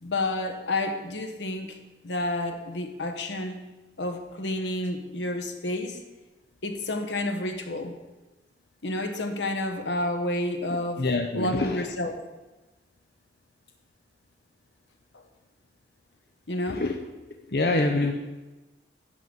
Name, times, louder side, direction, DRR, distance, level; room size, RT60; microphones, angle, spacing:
voice 1, 0.0-1.8 2.0-3.6 4.0-6.0 6.6-8.0 8.8-11.1 11.3-12.2 15.1-15.2 16.5-16.8, left 1 dB, 85° left, 6 dB, 1.1 m, -30 dB
voice 2, 11.0-11.8 16.7-17.0 17.5-18.1, left 2 dB, 60° left, 4 dB, 0.7 m, -25 dB
11.0 x 4.0 x 7.7 m, 1.1 s
head